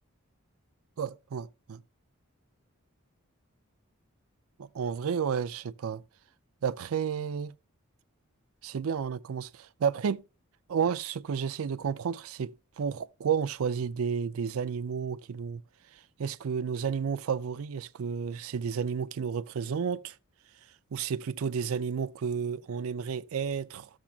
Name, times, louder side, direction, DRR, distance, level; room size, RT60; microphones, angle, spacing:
voice 1, 1.0-1.8 4.6-6.0 6.6-7.5 8.6-10.2 10.7-15.6 16.2-20.1 20.9-23.9, right 6 dB, 75° right, 0.4 m, -31 dB
13.0 x 7.2 x 2.4 m
head